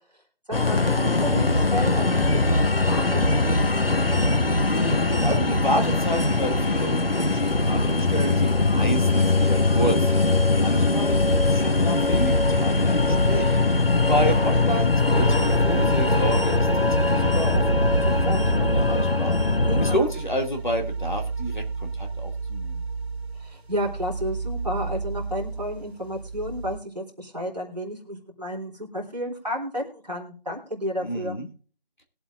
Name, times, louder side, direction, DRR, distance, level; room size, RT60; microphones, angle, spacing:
sound 1, 0.5-20.0, left 2 dB, 65° left, 1.1 m, -21 dB
voice 1, 0.6-2.6 2.9-3.7 19.6-20.1 23.4-31.4, equal, 40° right, -1 dB, 3.2 m, -32 dB
voice 2, 4.7-10.1 10.5-13.6 14.1-17.7 18.0-19.4 19.8-22.8 31.0-31.5, equal, 50° left, 3 dB, 2.4 m, -30 dB
sound 2, 15.1-26.8, right 4 dB, 85° right, 1.1 m, -31 dB
21.0 x 7.9 x 2.5 m, 0.39 s
figure-of-eight pair, 180°, 31 cm